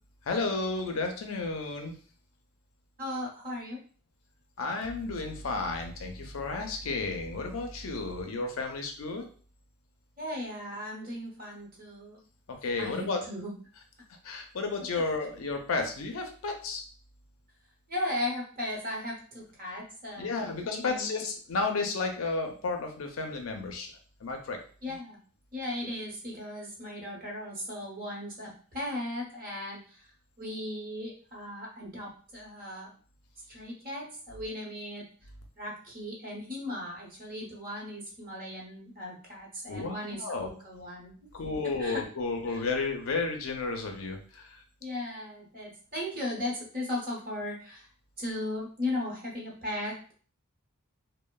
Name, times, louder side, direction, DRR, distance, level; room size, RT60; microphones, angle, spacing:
voice 1, 0.3-2.0 4.6-9.2 12.5-13.2 14.2-16.8 20.2-23.9 24.2-24.6 39.7-40.5 41.3-44.6, left 3 dB, 65° left, 4 dB, 0.5 m, -32 dB
voice 2, 3.0-3.8 10.2-12.2 12.8-13.5 17.9-21.2 24.8-25.2 25.5-30.0 30.4-32.9 33.5-35.1 35.6-41.2 41.6-42.1 42.5-42.7 44.8-47.9 48.2-50.1, left 1 dB, 40° right, -3 dB, 0.9 m, -37 dB
3.0 x 2.0 x 2.2 m, 0.42 s
head